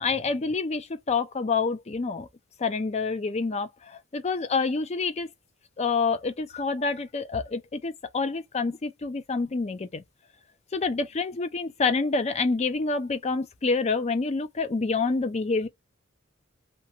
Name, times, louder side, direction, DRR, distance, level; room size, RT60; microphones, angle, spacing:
voice 1, 0.0-2.3 2.6-5.3 5.8-10.0 10.7-15.7, left 4 dB, 30° left, 0.4 m, -27 dB
2.9 x 2.2 x 2.9 m
head